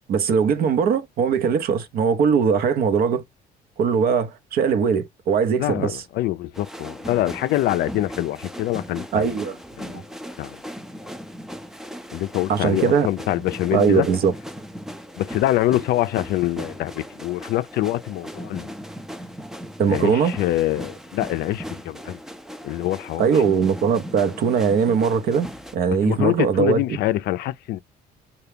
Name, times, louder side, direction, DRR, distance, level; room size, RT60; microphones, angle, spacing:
voice 1, 0.1-3.2 3.8-6.0 9.1-9.6 12.5-13.1 13.7-14.3 19.8-20.3 23.2-27.0, right 6 dB, 60° right, 0.7 m, -20 dB
voice 2, 5.6-9.4 9.8-10.0 10.4-10.6 12.1-14.1 15.2-18.7 19.8-22.2 22.6-23.3 26.0-27.8, left 15 dB, 70° left, 0.4 m, -25 dB
sound 1, 6.5-25.8, equal, 5° right, 0.4 m, -38 dB
5.6 x 2.3 x 3.3 m
cardioid pair, 110°, 17 cm